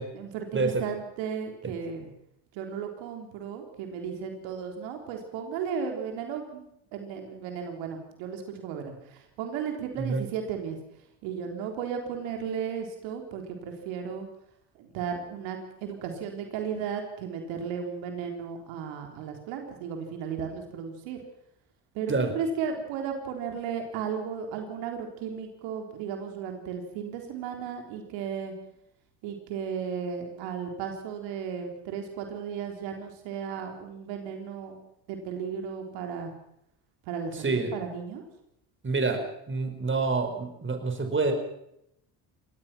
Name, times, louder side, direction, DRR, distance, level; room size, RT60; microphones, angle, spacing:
voice 1, 0.1-2.1 2.5-6.6 6.9-10.8 11.2-14.3 14.8-21.2 21.9-28.5 29.2-34.8 35.1-36.3 37.1-38.3, right 7 dB, 90° right, 4 dB, 3.8 m, -35 dB
voice 2, 38.8-41.3, right 3 dB, 25° right, 6 dB, 5.2 m, -27 dB
24.0 x 18.5 x 6.1 m, 0.76 s
cardioid pair, 90°, 43 cm